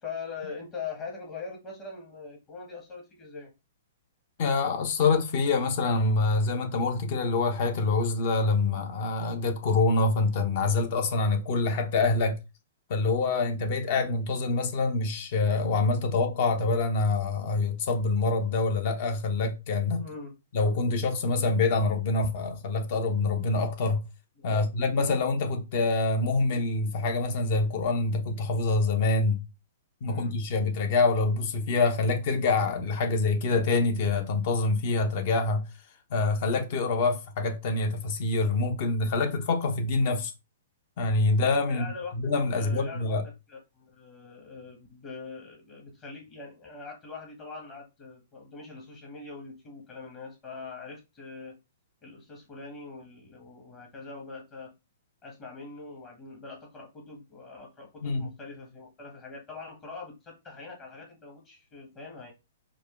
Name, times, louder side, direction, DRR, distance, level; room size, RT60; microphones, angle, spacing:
voice 1, 0.0-3.5 20.0-20.3 24.4-24.7 30.0-30.4 41.7-43.2 43.5-51.6 52.0-54.7 55.2-62.3, left 4 dB, 30° left, 1.3 m, -42 dB
voice 2, 4.4-12.4 12.9-20.1 20.5-24.0 24.4-29.4 30.0-35.6 36.1-40.3 41.0-41.9 42.1-43.2 58.0-58.3, left 3 dB, 50° left, 1.0 m, -26 dB
4.6 x 2.4 x 3.1 m
hypercardioid pair, 130°, 0 cm